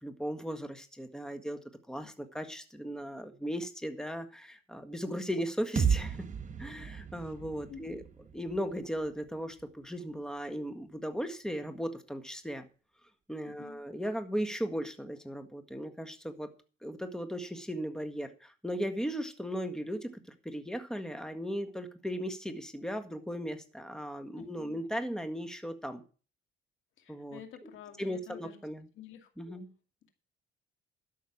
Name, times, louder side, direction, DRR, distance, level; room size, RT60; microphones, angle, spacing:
voice 1, 0.0-1.6 1.9-6.2 6.6-8.0 8.3-12.7 13.3-16.5 16.8-26.0 27.1-27.4 28.0-28.8 29.4-29.7, equal, 5° left, 8 dB, 1.7 m, -37 dB
sound 1, 5.8-9.6, right 6 dB, 40° right, 1.5 m, -34 dB
voice 2, 7.7-8.0 13.4-13.8 24.3-24.8 27.0-28.6 28.9-29.7, left 8 dB, 80° left, 7 dB, 2.2 m, -50 dB
12.5 x 6.4 x 7.3 m, 0.36 s
cardioid pair, 90°, 20 cm